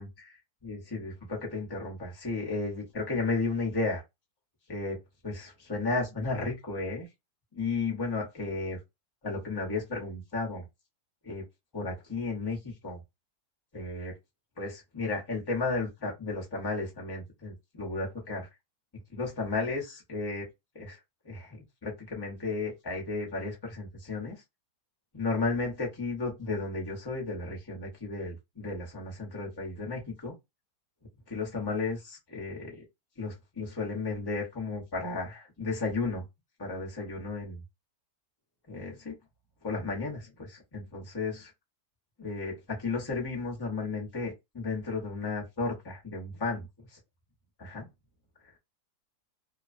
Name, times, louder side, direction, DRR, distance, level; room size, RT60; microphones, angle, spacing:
voice 1, 0.0-4.0 4.7-5.0 5.2-7.1 7.5-8.8 9.2-10.7 11.2-11.4 11.7-13.0 13.7-14.1 14.6-18.5 19.1-20.5 20.7-21.0 21.2-24.4 25.1-30.3 31.3-32.8 33.2-36.2 36.6-37.6 38.7-39.1 39.6-41.5 42.2-47.0 47.6-47.9, left 3 dB, 20° left, 0.7 m, -34 dB
2.8 x 2.2 x 2.5 m
omnidirectional pair, 1.8 m